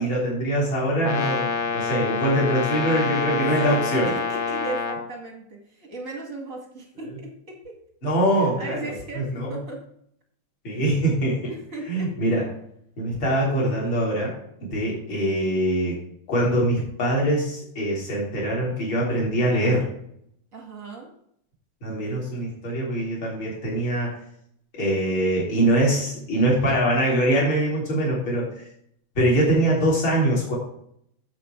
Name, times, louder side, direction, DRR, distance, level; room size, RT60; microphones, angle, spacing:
voice 1, 0.0-4.1 8.0-9.6 10.6-11.4 11.9-12.4 13.0-14.3 14.7-16.0 16.3-19.8 21.8-24.1 24.7-28.7 29.2-30.6, right 1 dB, 35° left, -4 dB, 4.1 m, -23 dB
Brass instrument, 1.0-5.1, left 5 dB, 70° left, 1.8 m, -27 dB
voice 2, 3.3-3.8 4.0-7.7 8.4-9.8 10.7-10.8 11.5-12.1 20.5-21.1, right 2 dB, 30° right, 0 dB, 1.8 m, -37 dB
8.2 x 7.7 x 4.6 m, 0.69 s
omnidirectional pair, 3.8 m